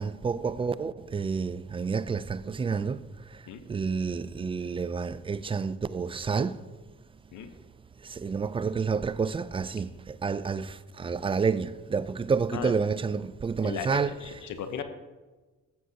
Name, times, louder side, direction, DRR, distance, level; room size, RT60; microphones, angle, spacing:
voice 1, 0.0-6.6 8.0-14.4, right 5 dB, 20° right, 0.3 m, -30 dB
voice 2, 13.6-14.8, left 7 dB, 80° left, 0.9 m, -36 dB
15.0 x 7.6 x 2.8 m
cardioid pair, 90°, 30 cm